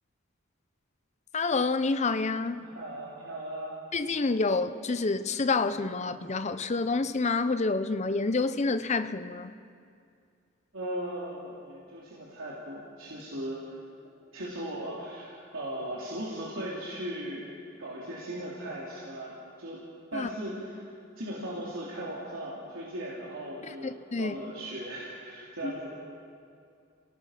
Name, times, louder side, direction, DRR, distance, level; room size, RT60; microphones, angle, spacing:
voice 1, 1.3-2.6 3.9-9.5 20.1-20.3 23.8-24.4 25.6-25.7, left 3 dB, 35° left, 0.7 m, -28 dB
voice 2, 2.6-3.8 10.7-13.8 14.3-17.4 17.8-19.8 20.1-20.9 21.2-25.9, right 1 dB, 85° right, 3.4 m, -38 dB
29.0 x 17.5 x 5.8 m
head